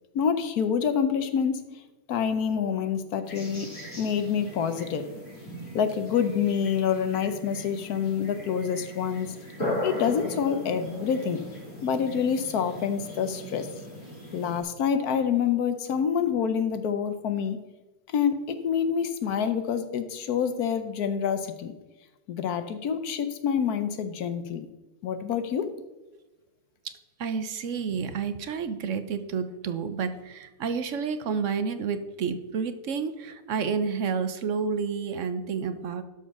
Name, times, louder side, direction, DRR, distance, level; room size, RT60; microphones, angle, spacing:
voice 1, 0.1-1.6 2.1-3.7 4.0-5.0 5.7-9.3 9.8-11.4 11.8-13.7 14.3-17.6 18.1-21.7 22.3-24.7 25.0-25.7, left 7 dB, 75° left, 9 dB, 1.3 m, -27 dB
sound 1, 3.2-14.6, left 1 dB, 30° left, 4.1 m, -38 dB
voice 2, 26.8-36.0, right 6 dB, 60° right, 10 dB, 0.9 m, -30 dB
12.0 x 4.6 x 6.0 m, 1.1 s
omnidirectional pair, 1.7 m